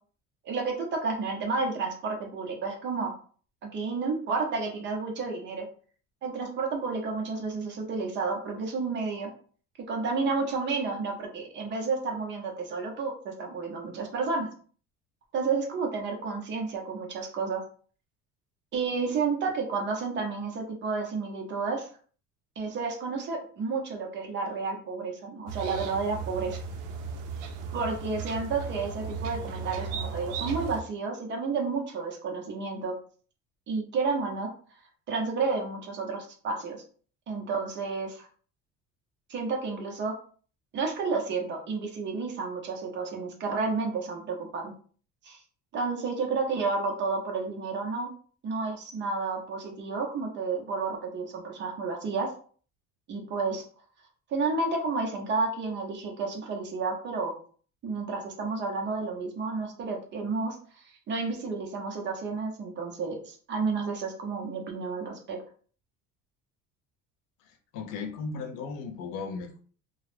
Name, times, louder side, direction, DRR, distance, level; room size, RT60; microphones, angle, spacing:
voice 1, 0.4-3.2 3.6-5.7 6.2-9.3 9.9-14.5 15.3-17.6 18.7-21.9 22.6-26.6 27.7-32.9 33.7-34.5 35.1-36.8 37.3-38.3 39.3-40.2 40.7-44.7 45.2-45.4 45.7-48.1 48.4-52.3 53.1-53.6 54.3-57.3 57.8-60.6 61.1-65.4, right 4 dB, 35° right, 1 dB, 0.6 m, -31 dB
sound 1, 25.5-30.8, right 5 dB, 75° right, 0.5 m, -36 dB
voice 2, 67.7-69.6, left 4 dB, 75° left, 5 dB, 0.6 m, -36 dB
2.2 x 2.0 x 3.1 m, 0.43 s
cardioid pair, 165°, 31 cm